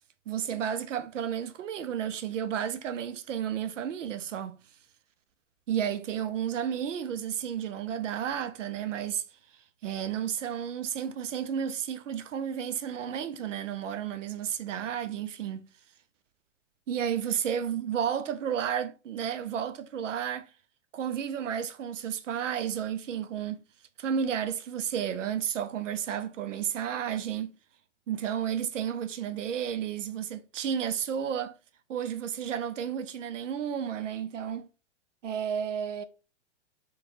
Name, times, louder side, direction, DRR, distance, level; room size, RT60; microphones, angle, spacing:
voice 1, 0.3-4.6 5.7-9.2 9.8-15.7 16.9-20.5 20.9-23.6 24.0-27.5 28.1-31.5 31.9-34.7 35.2-36.0, right 8 dB, 85° right, 0.5 m, -32 dB
3.0 x 2.2 x 2.5 m
hypercardioid pair, 115°, 37 cm